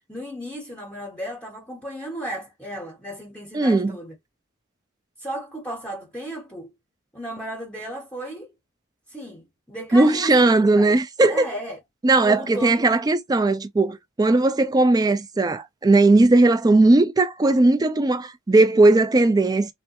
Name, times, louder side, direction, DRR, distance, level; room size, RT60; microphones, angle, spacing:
voice 1, 0.1-4.1 5.2-6.7 7.1-8.5 9.1-11.0 11.3-11.8 12.2-12.9, equal, 5° left, 0.8 m, -34 dB
voice 2, 3.5-3.9 9.9-11.5 12.0-19.7, right 2 dB, 20° right, 0.4 m, -18 dB
3.3 x 2.2 x 2.8 m
head